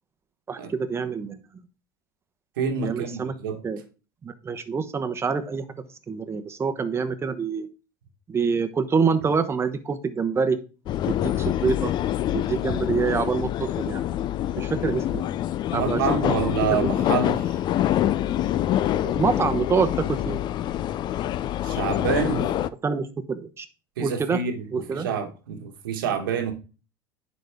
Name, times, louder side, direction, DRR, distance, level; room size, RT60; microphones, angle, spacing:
voice 1, 0.5-1.4 2.8-3.3 3.6-3.8 4.2-5.8 6.1-7.7 8.3-10.6 11.1-11.9 12.3-14.0 14.6-15.3 15.7-16.3 16.8-16.9 19.0-20.4 22.8-23.7 24.0-24.4 24.7-25.1, right 5 dB, 25° right, 1.0 m, -26 dB
voice 2, 2.6-3.6 15.7-17.6 21.6-22.5 24.0-26.5, right 6 dB, 85° right, 1.4 m, -27 dB
sound 1, 10.9-22.7, left 12 dB, 45° left, 0.4 m, -26 dB
10.5 x 4.1 x 3.5 m
supercardioid pair, 100°, 11 cm